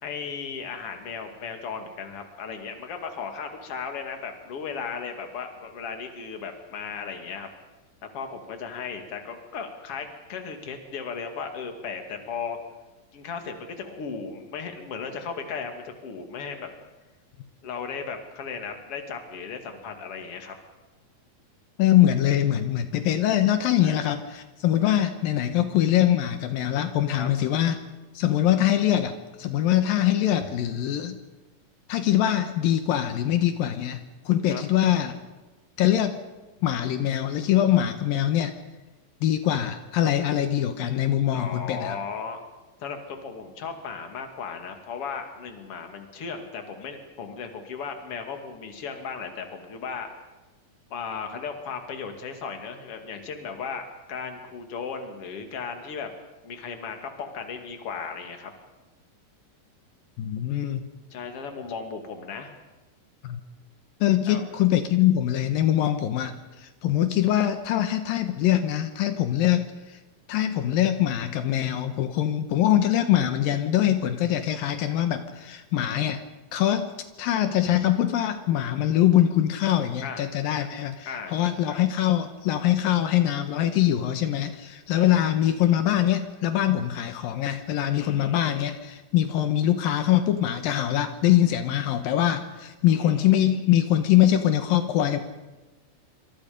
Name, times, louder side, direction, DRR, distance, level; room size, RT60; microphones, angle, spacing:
voice 1, 0.0-7.5 8.1-12.6 13.1-16.7 17.6-20.6 23.8-24.0 27.1-27.3 34.5-34.6 41.3-42.4 42.8-50.1 50.9-56.1 56.4-58.5 61.1-62.5 64.3-64.4 80.0-80.3 81.1-81.3 84.9-85.2 87.9-88.5 92.9-93.3, left 5 dB, 45° left, 5 dB, 3.1 m, -36 dB
voice 2, 21.8-27.8 28.1-31.2 31.9-35.2 35.8-36.2 36.6-38.5 39.2-42.0 60.2-60.9 63.2-63.4 64.0-70.0 70.3-76.2 76.5-76.9 77.2-95.2, left 12 dB, 80° left, 8 dB, 2.9 m, -23 dB
27.0 x 26.0 x 5.3 m, 1.1 s
omnidirectional pair, 4.1 m